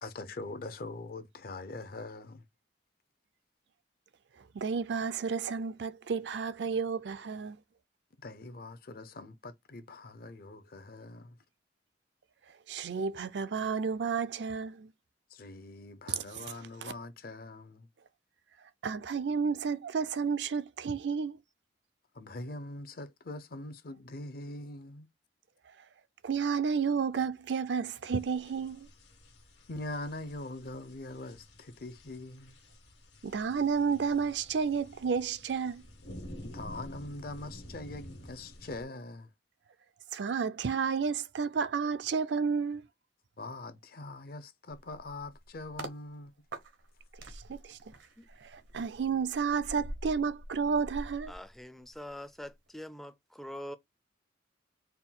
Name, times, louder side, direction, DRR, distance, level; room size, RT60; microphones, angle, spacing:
voice 1, 0.0-2.4 8.2-11.4 15.3-17.9 22.1-25.1 29.7-32.5 36.4-39.3 43.4-46.3, left 2 dB, 55° left, 0.6 m, -43 dB
voice 2, 4.5-7.6 12.7-14.9 16.1-16.2 16.8-16.9 18.8-21.4 26.2-28.9 33.2-35.8 40.1-42.9 47.5-47.8 48.4-51.3, right 6 dB, 70° right, 0.4 m, -31 dB
sound 1, 28.1-38.8, equal, 70° left, 1.4 m, -50 dB
sound 2, 44.7-46.0 46.5-52.1 52.4-52.7, right 1 dB, 90° right, 1.0 m, -46 dB
voice 3, 51.3-53.8, left 1 dB, ahead, 0.4 m, -44 dB
4.3 x 2.3 x 3.6 m
head